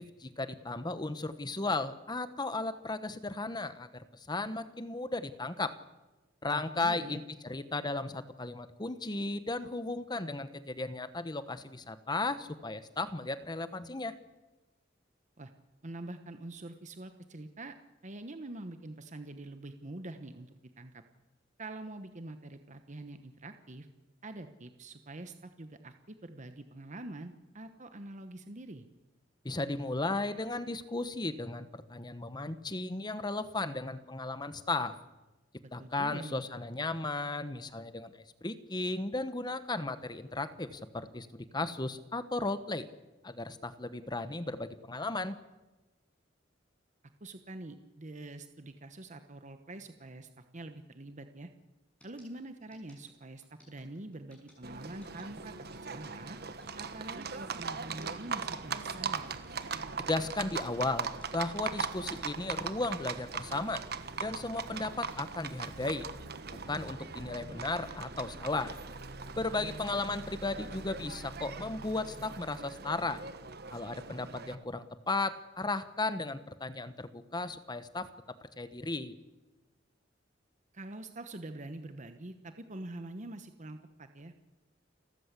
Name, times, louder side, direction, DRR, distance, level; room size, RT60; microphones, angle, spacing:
voice 1, 0.0-5.8 6.4-14.1 29.4-34.9 35.7-42.9 43.2-45.4 60.0-63.8 64.2-66.1 66.7-68.7 69.4-73.2 73.7-78.1 78.6-79.2, left 2 dB, 25° left, 12 dB, 1.1 m, -35 dB
voice 2, 6.5-7.2 15.4-15.5 15.8-17.7 18.0-21.0 21.6-23.9 24.2-28.9 35.8-36.4 47.2-51.5 52.0-55.5 55.8-56.4 56.8-59.2 69.5-69.8 80.7-84.3, right 2 dB, 40° right, 8 dB, 1.1 m, -45 dB
sound 1, 52.0-66.0, left 1 dB, 5° left, 7.3 m, -61 dB
Livestock farm animals working animals, 54.6-74.5, right 5 dB, 60° right, 1.4 m, -40 dB
29.0 x 14.0 x 8.3 m, 1.1 s
head